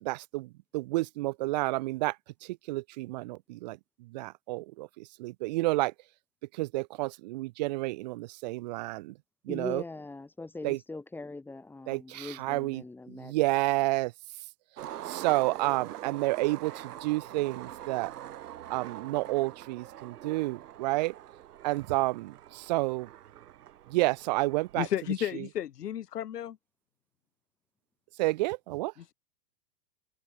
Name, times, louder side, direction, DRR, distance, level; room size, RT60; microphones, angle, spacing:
voice 1, 0.0-2.2 2.4-5.9 6.5-9.1 9.5-9.8 10.6-10.8 11.9-14.1 15.1-18.1 18.7-21.1 21.6-23.1 23.9-24.9 28.2-28.9, right 21 dB, 30° right, 0.6 m, -30 dB
voice 2, 9.5-13.3, left 3 dB, 5° left, 2.6 m, -41 dB
Skateboard, 14.8-24.9, right 12 dB, 80° right, 3.1 m, -44 dB
voice 3, 24.8-26.6 29.0-29.1, left 10 dB, 90° left, 5.3 m, -33 dB
supercardioid pair, 165°, 46 cm